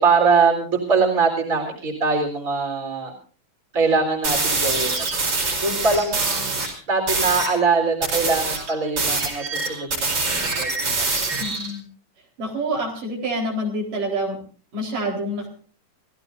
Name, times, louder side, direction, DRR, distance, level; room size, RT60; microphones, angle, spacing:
voice 1, 0.0-3.1 3.7-5.0 5.6-6.6 6.9-11.1, right 4 dB, 20° right, 2 dB, 4.1 m, -22 dB
sound 1, 4.2-6.7 7.1-7.5 8.0-11.7, right 3 dB, 40° right, 5.1 m, -24 dB
voice 2, 11.4-11.8 12.4-14.4 14.7-15.5, right 1 dB, 65° right, 0 dB, 5.8 m, -27 dB
29.0 x 15.5 x 2.6 m, 0.40 s
omnidirectional pair, 4.1 m